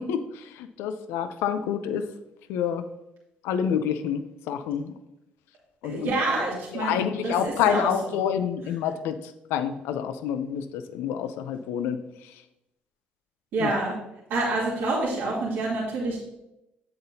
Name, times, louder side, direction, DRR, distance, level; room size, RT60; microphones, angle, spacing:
voice 1, 0.0-2.1 2.5-2.9 3.4-4.9 5.8-6.4 6.7-9.2 9.5-12.0 13.6-13.7, left 8 dB, 80° left, 10 dB, 0.6 m, -28 dB
voice 2, 5.8-8.1 13.5-13.9 14.3-16.2, right 2 dB, 75° right, -6 dB, 2.5 m, -27 dB
7.9 x 7.7 x 2.8 m, 0.89 s
supercardioid pair, 65°, 4 cm